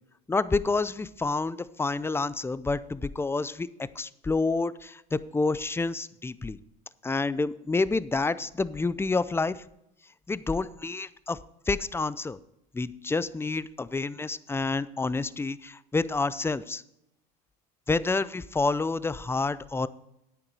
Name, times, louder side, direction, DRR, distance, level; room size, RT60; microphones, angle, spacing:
voice 1, 0.3-6.6 7.0-9.6 10.3-11.4 11.7-12.4 12.7-16.8 17.9-19.9, left 3 dB, 10° left, 17 dB, 0.5 m, -28 dB
9.8 x 9.0 x 4.7 m, 0.83 s
supercardioid pair, 85°, 21 cm